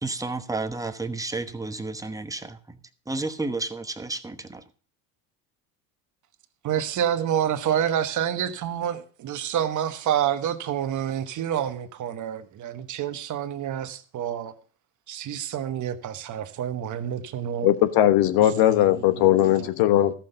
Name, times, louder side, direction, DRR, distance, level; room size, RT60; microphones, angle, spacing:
voice 1, 0.0-2.8 3.1-4.6, right 3 dB, 10° right, 1.1 m, -31 dB
voice 2, 6.6-14.5 15.1-17.7 18.4-19.7, right 9 dB, 45° right, 1.3 m, -28 dB
voice 3, 17.6-20.1, left 13 dB, 65° left, 1.3 m, -19 dB
13.5 x 5.9 x 6.7 m
supercardioid pair, 90°, 41 cm